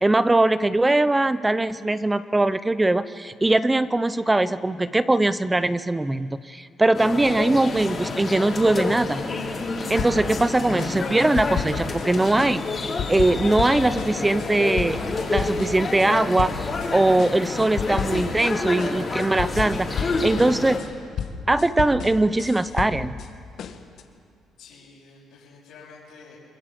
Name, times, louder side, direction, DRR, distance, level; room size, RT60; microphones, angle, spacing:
voice 1, 0.0-9.2 9.9-15.0 15.3-20.8 21.5-23.1, right 2 dB, 10° right, 14 dB, 0.6 m, -21 dB
sound 1, 6.9-20.8, left 3 dB, 30° left, 4.1 m, -29 dB
sound 2, 10.0-10.5 10.8-12.1 12.4-16.1 16.4-16.9 17.2-18.5 18.8-23.3 23.6-24.0, left 7 dB, 60° left, 1.6 m, -32 dB
voice 2, 24.6-26.4, left 4 dB, 75° left, -8 dB, 6.6 m, -48 dB
26.5 x 22.5 x 7.6 m, 2.4 s
cardioid pair, 125°, 0 cm